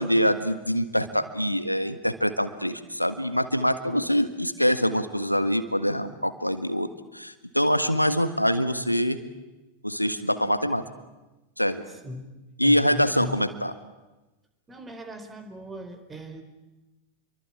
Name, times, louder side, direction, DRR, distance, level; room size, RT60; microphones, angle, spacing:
voice 1, 0.0-9.2 9.8-10.8 11.6-11.8 12.6-13.7, equal, 90° left, 11 dB, 1.6 m, -24 dB
voice 2, 11.9-12.3 12.6-13.4 14.7-16.4, equal, 15° right, 9 dB, 4.4 m, -39 dB
28.5 x 23.5 x 8.8 m, 1.1 s
figure-of-eight pair, 90°, 0 cm